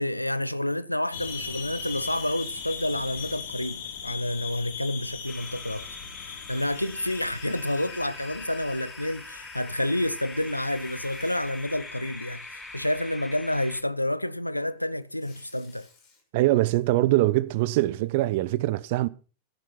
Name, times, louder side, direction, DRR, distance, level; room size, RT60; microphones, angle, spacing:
voice 1, 0.0-5.9 6.2-15.9, left 1 dB, 85° left, 0.7 m, -29 dB
sound 1, 1.1-13.1, left 6 dB, 60° left, 2.5 m, -40 dB
Tearing, 1.8-3.4 4.0-4.1 6.4-8.5 10.4-11.7 14.8-16.2, left 4 dB, 45° left, 6.5 m, -56 dB
sound 2, 5.3-13.8, left 2 dB, 10° left, 1.4 m, -43 dB
voice 2, 16.3-19.1, right 17 dB, 50° right, 0.8 m, -23 dB
14.0 x 10.5 x 4.3 m
figure-of-eight pair, 90°, 0 cm